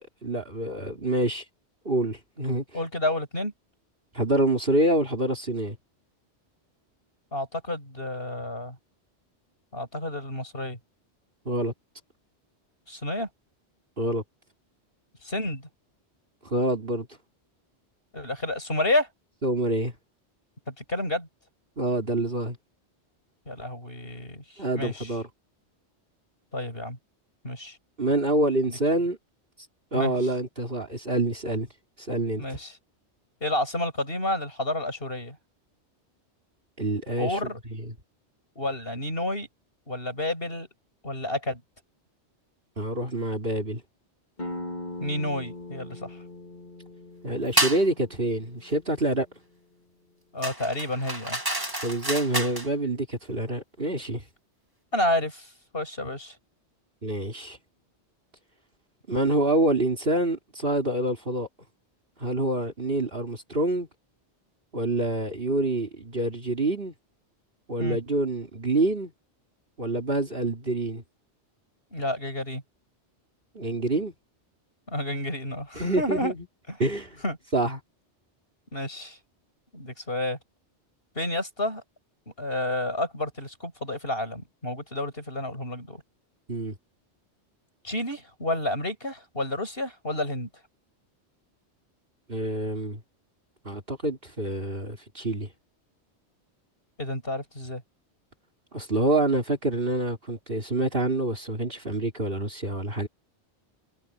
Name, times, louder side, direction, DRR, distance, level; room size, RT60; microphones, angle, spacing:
voice 1, 0.2-1.4 1.9-2.6 4.1-5.8 11.5-11.7 14.0-14.2 16.4-17.1 19.4-19.9 21.8-22.6 24.6-25.3 28.0-29.2 29.9-31.7 32.0-32.4 36.8-37.3 42.8-43.8 47.2-49.3 51.8-54.2 57.0-57.6 59.1-61.5 62.2-63.9 64.7-66.9 67.7-69.1 69.8-71.0 73.5-74.1 75.7-76.4 76.8-77.2 77.5-77.8 86.5-86.8 92.3-93.0 93.7-95.5 98.7-103.1, right 1 dB, 50° right, 3.7 m, -26 dB
voice 2, 2.7-3.5 7.3-8.8 9.7-10.8 12.9-13.3 15.2-15.7 18.1-19.1 20.7-21.3 23.5-25.2 26.5-27.0 27.4-27.8 28.6-28.8 29.9-30.1 32.4-32.7 33.4-35.4 37.2-37.6 38.6-39.5 39.9-40.7 41.0-41.6 45.0-46.2 50.3-51.4 54.9-56.4 67.8-68.0 71.9-72.6 74.9-76.3 76.7-76.8 77.2-77.4 78.7-79.2 79.7-80.4 81.2-81.8 82.4-86.0 87.8-90.5 97.0-97.8, left 1 dB, 55° left, 8.5 m, -30 dB
sound 1, 44.4-49.8, left 1 dB, 40° left, 4.1 m, -41 dB
sound 2, 47.6-47.9 50.4-52.7, right 1 dB, 20° right, 2.5 m, -28 dB
omnidirectional pair, 1.2 m